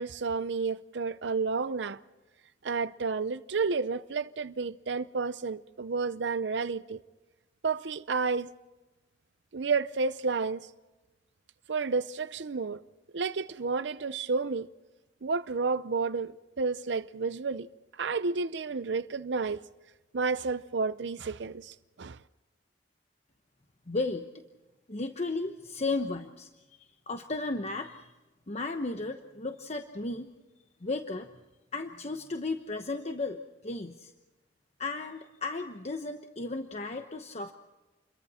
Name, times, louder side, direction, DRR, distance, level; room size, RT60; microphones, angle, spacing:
voice 1, 0.0-2.0 2.6-7.0 7.6-8.5 9.5-10.7 11.7-12.8 13.1-14.7 15.2-17.7 18.0-19.6 20.1-22.2, right 4 dB, 70° right, 0.6 m, -31 dB
voice 2, 23.9-24.3 24.9-28.1 28.5-30.3 30.8-31.3 31.7-34.1 34.8-37.5, left 3 dB, 40° left, 1.0 m, -34 dB
29.0 x 23.0 x 4.3 m
head